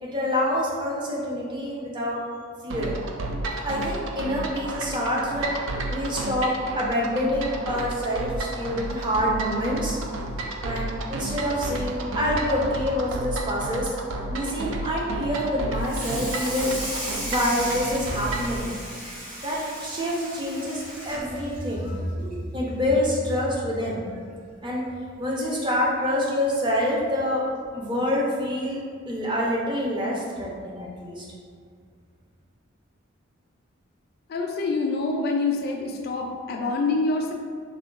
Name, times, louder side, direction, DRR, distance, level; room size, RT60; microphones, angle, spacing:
voice 1, 0.0-2.2 2.6-2.9 3.6-5.5 5.9-10.0 10.6-13.9 14.3-18.7 19.4-22.1 22.5-24.0 24.6-24.8 25.2-27.4 27.7-28.8 29.1-31.2, left 1 dB, 25° right, -4 dB, 0.6 m, -26 dB
sound 1, 2.7-18.6, right 2 dB, 70° right, 0.4 m, -32 dB
Water tap faucet / Sink (filling or washing), 15.8-22.4 22.8-23.1 23.4-23.5 23.9-24.0 25.1-25.2 25.7-25.9, equal, 45° right, 1.5 m, -36 dB
voice 2, 34.3-37.3, left 3 dB, 50° left, 2 dB, 0.3 m, -26 dB
3.5 x 2.2 x 3.7 m, 2.1 s
head